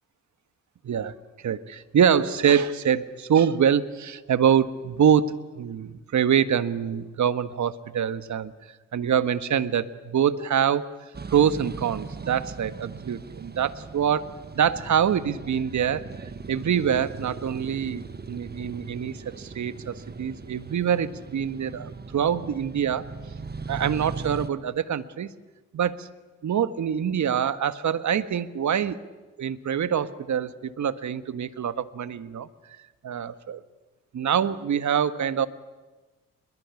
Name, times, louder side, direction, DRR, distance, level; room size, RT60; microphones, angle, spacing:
voice 1, 1.4-8.5 8.9-10.9 11.3-14.2 14.5-16.0 16.5-23.1 23.7-25.3 25.7-26.1 26.4-29.0 29.4-32.5 33.0-33.6 34.1-35.5, right 8 dB, 55° right, 13 dB, 1.6 m, -25 dB
sound 1, 11.1-24.5, right 4 dB, 30° right, 1.5 m, -39 dB
27.5 x 22.5 x 8.5 m, 1.2 s
hypercardioid pair, 45°, 35 cm